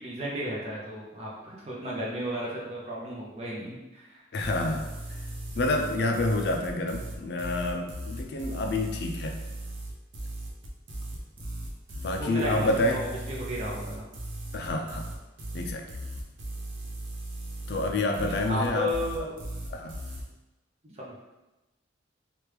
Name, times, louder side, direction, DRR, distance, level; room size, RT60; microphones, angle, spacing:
voice 1, 0.0-4.2 12.1-14.1 18.5-19.3 20.8-21.1, equal, 35° right, -5 dB, 0.7 m, -34 dB
voice 2, 4.3-4.9 5.6-9.4 12.0-13.0 14.5-15.1 15.5-15.9 17.7-18.9 19.7-20.0, left 2 dB, 60° left, 3 dB, 0.4 m, -28 dB
sound 1, 4.4-20.2, right 1 dB, 85° right, 0.6 m, -37 dB
3.0 x 2.4 x 3.3 m, 1.0 s
head